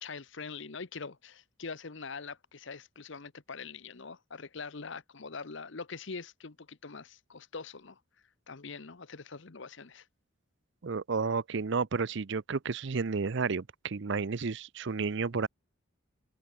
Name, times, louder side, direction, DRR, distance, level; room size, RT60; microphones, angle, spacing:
voice 1, 0.0-8.0 8.5-10.1, left 4 dB, 60° left, 0.9 m, -43 dB
voice 2, 10.8-15.5, right 4 dB, 60° right, 0.6 m, -31 dB
head